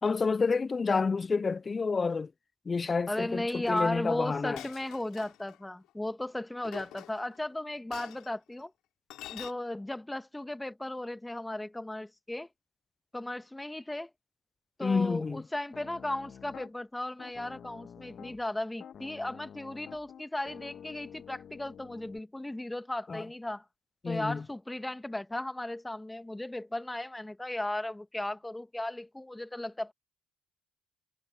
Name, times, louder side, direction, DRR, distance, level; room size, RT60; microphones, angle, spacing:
voice 1, 0.0-2.3 2.7-4.6 14.8-15.4 23.1-23.3 24.0-24.4, left 4 dB, 35° left, 0.6 m, -29 dB
voice 2, 3.1-8.7 9.3-12.5 13.1-14.1 14.8-23.6 24.1-29.9, left 1 dB, 10° left, 1.9 m, -36 dB
Chink clink, 3.7-3.9 4.6-5.6 6.6-7.4 7.9-8.3 9.1-9.5, left 14 dB, 70° left, 4.5 m, -46 dB
Piano, 15.7-16.7 17.2-18.4 18.8-22.2, left 8 dB, 55° left, 2.2 m, -49 dB
hypercardioid pair, 55°, 0 cm